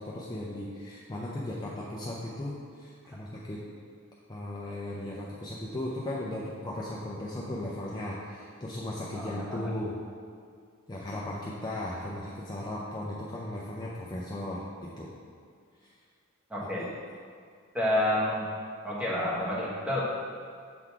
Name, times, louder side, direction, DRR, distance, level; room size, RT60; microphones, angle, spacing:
voice 1, 0.0-3.7 4.3-10.0 10.9-15.1, left 1 dB, 20° left, -5 dB, 0.5 m, -36 dB
voice 2, 9.1-9.6 16.5-16.9 17.7-18.5 18.8-20.0, left 1 dB, 5° right, -7 dB, 1.2 m, -29 dB
6.9 x 3.8 x 4.6 m, 2.1 s
head